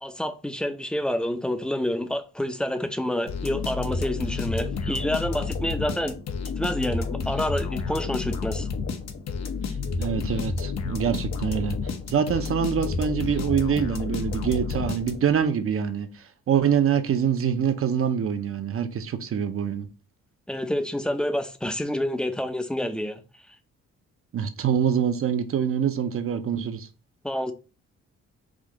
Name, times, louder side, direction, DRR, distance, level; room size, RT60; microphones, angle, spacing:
voice 1, 0.0-6.2 6.6-8.7 20.5-23.2 27.2-27.5, left 1 dB, 5° left, 0.6 m, -28 dB
sound 1, 3.3-15.5, left 4 dB, 60° left, 0.9 m, -30 dB
voice 2, 10.0-16.1 16.5-19.9 24.3-26.9, right 8 dB, 45° right, 0.7 m, -25 dB
5.0 x 2.7 x 3.8 m
cardioid pair, 90°, 30 cm